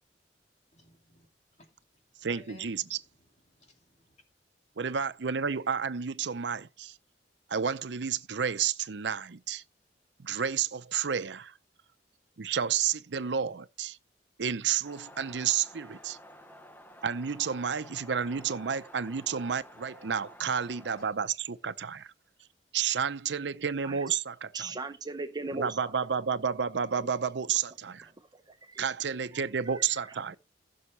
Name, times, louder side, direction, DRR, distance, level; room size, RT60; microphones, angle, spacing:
voice 1, 0.7-4.2 18.1-18.8 19.7-19.8 20.4-21.3 23.6-23.8 27.5-28.2 29.8-30.4, left 2 dB, 40° left, 2.8 m, -60 dB
voice 2, 2.2-2.8 4.8-6.9 7.5-9.6 10.2-11.5 12.4-14.0 14.4-16.2 17.0-22.1 22.7-24.5 25.6-28.1 28.8-30.4, right 7 dB, 80° right, 0.6 m, -31 dB
sound 1, 14.8-21.1, equal, 10° left, 0.8 m, -51 dB
voice 3, 24.5-25.9 27.0-27.1 28.0-28.8 29.3-30.4, right 3 dB, 25° right, 0.8 m, -40 dB
16.0 x 6.3 x 3.2 m
head